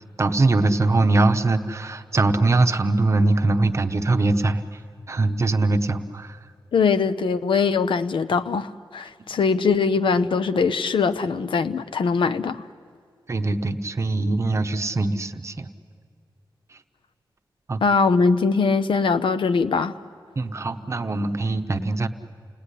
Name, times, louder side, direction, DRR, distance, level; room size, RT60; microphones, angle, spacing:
voice 1, 0.2-4.6 5.1-6.4 13.3-15.7 17.7-17.8 20.4-22.1, right 2 dB, 35° right, 0.9 m, -22 dB
voice 2, 6.7-12.7 17.8-20.0, left 5 dB, 80° left, 0.8 m, -21 dB
29.0 x 19.0 x 9.9 m
wide cardioid pair, 165°, 9 cm